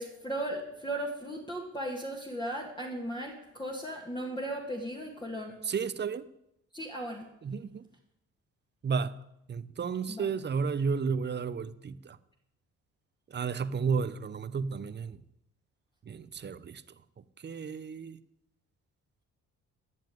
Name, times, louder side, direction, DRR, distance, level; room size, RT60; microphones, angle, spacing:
voice 1, 0.0-5.5 6.7-7.3 10.1-10.3, right 1 dB, 15° left, 2.1 m, -36 dB
voice 2, 5.6-6.2 7.4-7.8 8.8-9.1 9.5-12.0 13.3-15.2 16.1-16.8 17.4-18.2, right 5 dB, 35° right, 0.7 m, -32 dB
12.0 x 7.4 x 9.1 m
cardioid pair, 90°, 30 cm